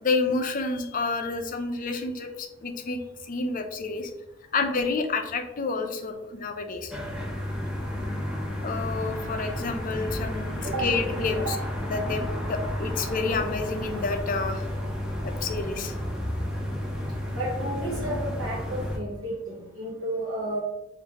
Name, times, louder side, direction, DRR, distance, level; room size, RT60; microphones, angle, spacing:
voice 1, 0.0-3.0 3.2-4.1 4.5-7.0 8.6-11.6 11.9-12.2 12.5-14.6 15.2-15.9, left 3 dB, 40° left, 5 dB, 0.4 m, -29 dB
sound 1, 6.9-19.0, left 1 dB, 5° right, 0.6 m, -32 dB
voice 2, 17.3-20.6, right 1 dB, 65° right, -7 dB, 1.0 m, -32 dB
4.6 x 2.6 x 2.8 m, 0.96 s
head